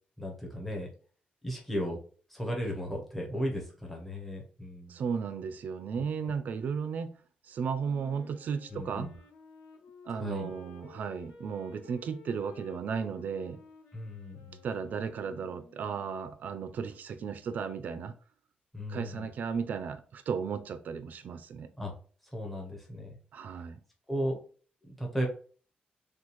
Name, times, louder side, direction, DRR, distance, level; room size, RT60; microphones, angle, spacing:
voice 1, 0.2-0.9 1.4-2.0 2.3-5.0 5.9-6.3 8.7-9.1 10.1-10.5 13.9-14.6 18.7-19.3 21.8-21.9 22.3-23.2 24.1-24.4 24.8-25.3, equal, 5° left, 1.0 m, -35 dB
voice 2, 4.9-7.1 7.5-9.1 10.1-13.6 14.6-18.1 18.9-21.7 23.3-23.8, right 6 dB, 65° right, 0.5 m, -35 dB
Wind instrument woodwind instrument, 7.8-16.1, left 3 dB, 90° left, 0.9 m, -54 dB
6.1 x 2.4 x 3.1 m
wide cardioid pair, 155°, 3 cm